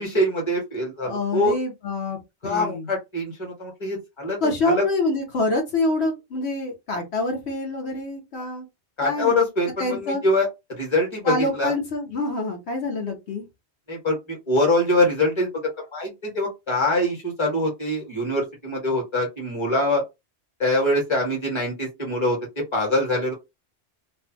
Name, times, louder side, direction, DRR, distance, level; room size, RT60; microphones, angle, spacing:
voice 1, 0.0-1.6 2.4-4.4 4.6-4.8 9.0-10.5 10.8-11.7 13.9-15.5 15.8-20.0 20.6-22.4 22.7-23.3, left 1 dB, 25° left, 1.2 m, -24 dB
voice 2, 1.0-2.2 2.4-2.9 4.4-8.7 9.0-9.4 9.8-10.2 11.2-13.4, left 2 dB, 75° left, 1.1 m, -26 dB
2.6 x 2.3 x 2.6 m
omnidirectional pair, 1.1 m